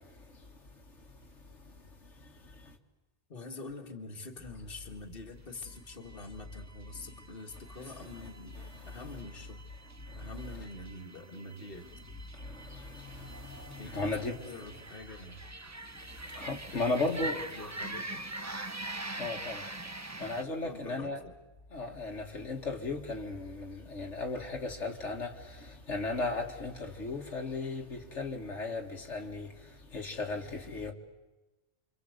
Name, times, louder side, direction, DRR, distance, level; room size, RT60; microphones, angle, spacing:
voice 1, 3.3-8.6 8.9-9.6 10.2-11.9 13.8-14.0 14.4-15.4 16.7-17.0 17.5-18.2 20.6-21.3, left 2 dB, 50° left, 2.2 m, -45 dB
sound 1, 5.4-20.4, right 2 dB, 15° right, 0.8 m, -44 dB
voice 2, 12.5-14.4 16.3-17.4 19.2-19.6 20.2-21.2 21.7-25.3 25.7-29.5 29.9-30.9, left 3 dB, 80° left, 2.3 m, -35 dB
29.0 x 25.0 x 8.1 m
omnidirectional pair, 1.2 m